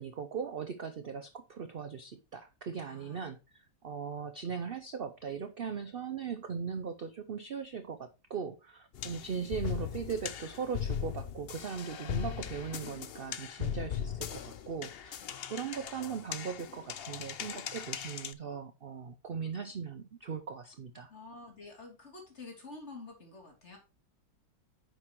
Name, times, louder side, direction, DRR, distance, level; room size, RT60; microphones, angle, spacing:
voice 1, 0.0-15.2 15.5-21.1, right 6 dB, 70° right, 0.5 m, -39 dB
voice 2, 2.8-3.3 9.0-9.1 13.6-13.8 15.2-15.3 21.1-23.8, left 3 dB, 40° left, 3.3 m, -49 dB
sound 1, 8.9-18.3, left 9 dB, 75° left, 0.5 m, -39 dB
9.8 x 6.6 x 3.0 m
omnidirectional pair, 1.8 m